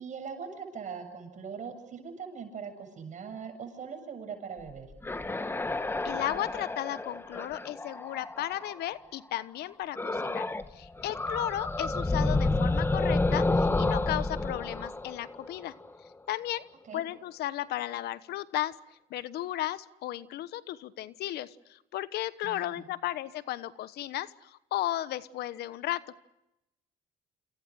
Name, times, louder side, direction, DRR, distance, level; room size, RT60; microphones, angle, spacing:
voice 1, 0.0-4.9 16.8-17.0 22.4-22.9, right 6 dB, 45° right, 6 dB, 7.6 m, -41 dB
sound 1, 4.7-8.8 9.9-10.7 11.0-15.9, left 2 dB, 15° left, 1.4 m, -30 dB
voice 2, 6.0-15.7 16.3-16.7 16.9-18.8 19.1-26.1, left 14 dB, 75° left, 16 dB, 1.2 m, -35 dB
28.0 x 27.5 x 6.5 m, 0.89 s
cardioid pair, 110°, 17 cm